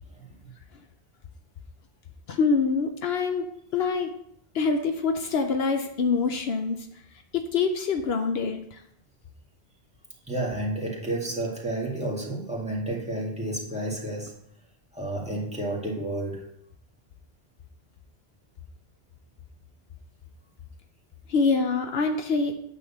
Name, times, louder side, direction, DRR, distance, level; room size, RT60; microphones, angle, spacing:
voice 1, 2.3-4.1 4.5-6.8 7.3-8.8 21.3-22.5, left 4 dB, 75° left, 5 dB, 0.9 m, -25 dB
voice 2, 10.3-14.4 14.9-16.5, right 1 dB, 5° right, -5 dB, 2.0 m, -31 dB
9.1 x 4.1 x 7.0 m, 0.73 s
omnidirectional pair, 1.1 m